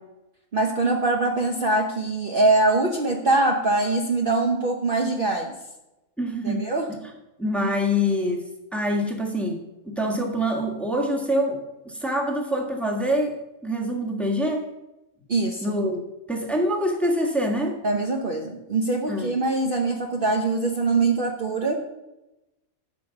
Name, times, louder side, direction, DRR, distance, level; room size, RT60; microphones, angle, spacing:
voice 1, 0.5-5.6 6.4-6.9 15.3-15.6 17.8-21.9, right 2 dB, 40° right, 1 dB, 1.1 m, -23 dB
voice 2, 6.2-6.7 7.4-11.6 11.8-13.4 13.6-14.7 15.6-17.8 19.1-19.4, equal, ahead, 0 dB, 1.6 m, -25 dB
11.5 x 5.2 x 7.1 m, 0.96 s
omnidirectional pair, 1.5 m